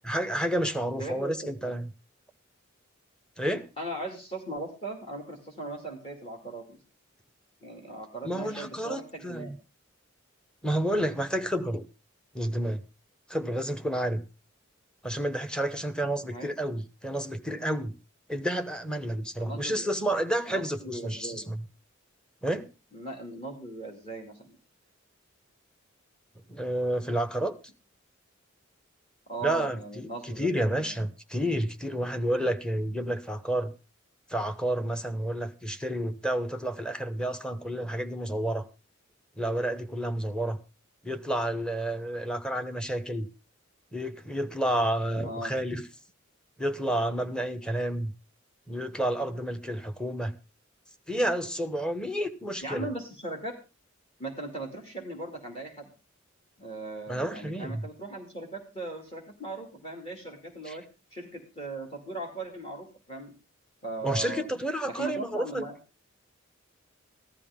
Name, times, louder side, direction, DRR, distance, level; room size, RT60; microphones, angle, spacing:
voice 1, 0.0-1.9 3.4-3.7 8.2-9.6 10.6-11.8 12.3-12.8 13.3-14.3 15.0-18.0 18.3-21.6 22.4-22.7 26.5-27.5 29.4-33.7 34.3-38.6 39.4-40.6 41.0-43.3 43.9-45.8 46.6-48.1 48.7-50.4 51.1-52.9 57.1-57.8 60.7-60.8 64.0-65.6, right 1 dB, 5° left, 7 dB, 1.0 m, -30 dB
voice 2, 0.9-1.7 3.8-6.8 7.6-9.5 16.2-16.6 19.4-19.9 20.5-21.5 22.9-24.6 29.3-31.0 45.2-45.5 52.6-53.6 54.2-55.9 56.6-60.8 61.1-63.3 63.8-64.5 64.8-65.7, right 2 dB, 30° left, 2 dB, 2.5 m, -38 dB
15.0 x 12.5 x 3.6 m, 0.30 s
head